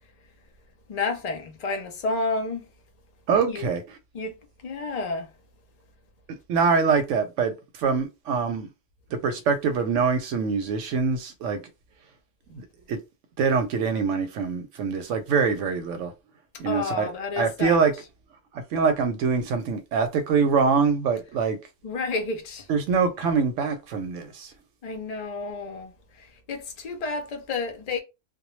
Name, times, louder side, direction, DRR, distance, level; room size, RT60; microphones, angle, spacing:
voice 1, 0.9-2.7 3.5-3.7 4.1-4.3 4.6-5.3 16.5-17.9 21.8-22.7 24.8-25.9 26.2-28.0, left 3 dB, 55° left, 0.4 m, -30 dB
voice 2, 3.3-3.8 6.5-7.5 7.8-8.7 9.1-11.6 12.5-13.0 13.4-16.1 16.6-17.1 17.4-17.9 18.5-21.6 22.7-24.5, right 5 dB, 80° right, 0.9 m, -24 dB
2.1 x 2.1 x 3.0 m
omnidirectional pair, 1.3 m